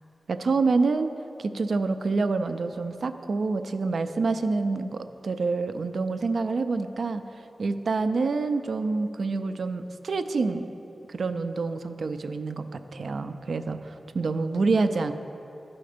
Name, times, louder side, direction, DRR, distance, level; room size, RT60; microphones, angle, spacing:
voice 1, 0.3-1.1 1.4-7.2 7.6-10.7 11.1-15.1, right 3 dB, 70° right, 9 dB, 0.4 m, -27 dB
11.5 x 4.3 x 5.0 m, 2.8 s
wide cardioid pair, 115°, 0 cm